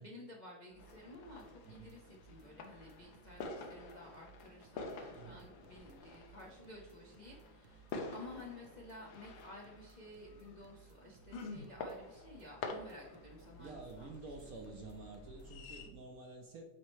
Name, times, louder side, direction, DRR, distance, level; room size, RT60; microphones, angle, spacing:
voice 1, 0.0-14.5, left 2 dB, 50° left, -2 dB, 0.5 m, -53 dB
sound 1, 0.7-15.7, right 6 dB, 85° right, 0.6 m, -62 dB
sound 2, 0.8-15.9, left 3 dB, 75° left, 1.6 m, -49 dB
voice 2, 13.6-16.6, right 3 dB, 60° right, 2 dB, 1.0 m, -50 dB
9.2 x 4.3 x 3.1 m, 1.2 s
omnidirectional pair, 2.1 m